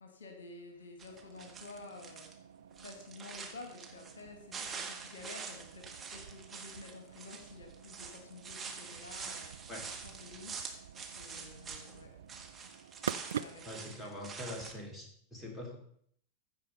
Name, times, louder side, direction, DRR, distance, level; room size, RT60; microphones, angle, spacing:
voice 1, 0.0-2.3 2.8-9.5 10.0-10.8 11.1-12.2 13.3-14.2, left 3 dB, 70° left, 5 dB, 1.4 m, -51 dB
sound 1, 1.0-2.3 2.7-4.2 4.5-12.0 12.3-14.7, right 5 dB, 20° right, 1.6 m, -46 dB
sound 2, 1.1-13.9, right 8 dB, 65° right, 0.3 m, -47 dB
voice 2, 13.6-15.8, left 1 dB, 10° left, 1 dB, 2.8 m, -44 dB
15.0 x 5.0 x 5.3 m, 0.65 s
figure-of-eight pair, 90°, 0 cm